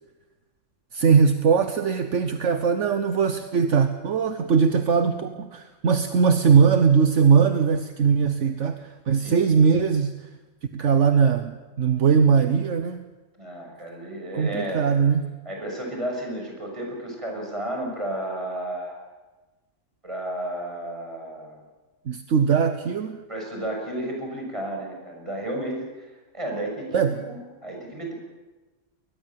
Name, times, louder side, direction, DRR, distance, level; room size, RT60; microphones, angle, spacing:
voice 1, 0.9-10.3 10.7-13.0 14.3-15.3 22.1-23.2 26.9-27.2, right 6 dB, 70° right, 9 dB, 1.3 m, -20 dB
voice 2, 13.4-14.9 15.4-19.0 20.0-21.6 23.3-28.1, right 1 dB, 25° right, 0 dB, 6.6 m, -32 dB
21.5 x 20.0 x 7.5 m, 1.2 s
omnidirectional pair, 1.3 m